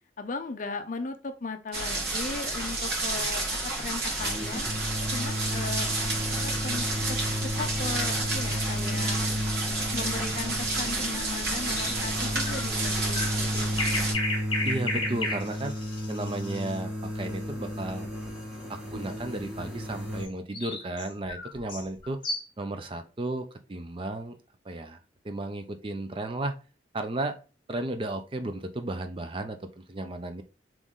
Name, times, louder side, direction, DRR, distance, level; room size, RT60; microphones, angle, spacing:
voice 1, 0.2-4.7 5.1-5.9 6.3-7.2 7.4-9.2 9.9-14.3, left 3 dB, 45° left, 0.5 m, -37 dB
sound 1, 1.7-14.1, right 2 dB, 60° right, 1.3 m, -31 dB
sound 2, 4.1-20.2, equal, 5° right, 1.1 m, -33 dB
sound 3, 11.7-16.8 20.2-22.6, left 2 dB, 25° left, 1.0 m, -34 dB
voice 2, 14.6-15.7 16.1-18.0 18.7-22.2 22.6-24.4 24.6-25.0 25.2-26.5 26.9-27.4 27.7-30.4, right 2 dB, 30° right, 0.4 m, -34 dB
3.7 x 3.1 x 3.6 m
head